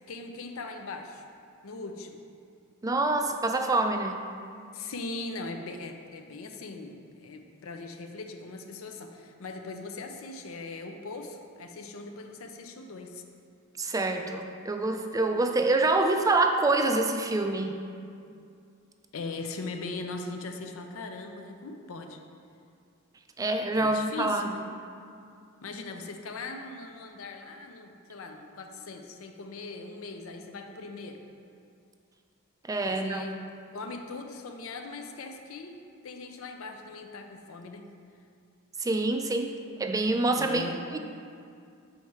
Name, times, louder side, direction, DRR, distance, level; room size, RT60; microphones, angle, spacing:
voice 1, 0.1-1.2 1.6-2.2 4.7-13.2 19.1-22.2 23.8-24.6 25.6-31.2 32.8-33.4 33.7-37.9 40.4-40.8, left 3 dB, 75° left, 5 dB, 0.5 m, -40 dB
voice 2, 2.8-4.2 13.8-17.8 23.4-24.5 32.7-33.2 38.8-39.5 39.8-41.0, right 2 dB, 15° right, 5 dB, 0.3 m, -26 dB
6.4 x 4.2 x 4.6 m, 2.4 s
head